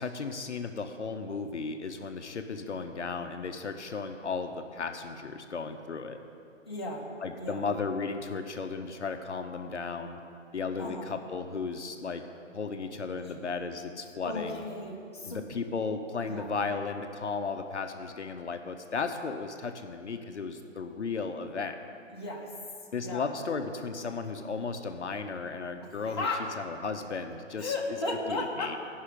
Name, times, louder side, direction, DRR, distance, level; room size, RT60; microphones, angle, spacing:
voice 1, 0.0-6.2 7.2-10.2 10.5-12.3 12.5-14.6 15.2-21.8 22.9-26.3 26.6-27.7 28.3-28.8, left 4 dB, 65° left, 6 dB, 0.8 m, -35 dB
voice 2, 6.6-7.1 7.4-7.6 10.8-11.1 13.2-13.3 14.2-15.5 16.2-16.5 22.1-22.5 23.0-23.3 26.0-26.5 27.6-28.8, left 2 dB, 20° left, -6 dB, 0.8 m, -35 dB
16.0 x 5.6 x 5.0 m, 2.5 s
hypercardioid pair, 175°, 38 cm